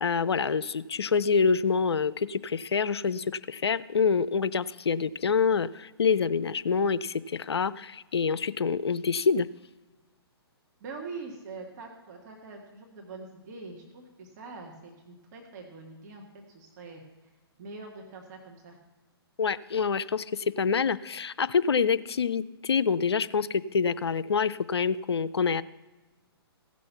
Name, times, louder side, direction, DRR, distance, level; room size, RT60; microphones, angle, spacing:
voice 1, 0.0-9.5 19.4-25.6, left 5 dB, 80° left, 15 dB, 0.5 m, -26 dB
voice 2, 10.8-16.2 16.5-17.0 17.6-18.8, right 4 dB, 40° right, 1 dB, 1.7 m, -43 dB
16.0 x 6.2 x 5.6 m, 1.2 s
hypercardioid pair, 130°, 13 cm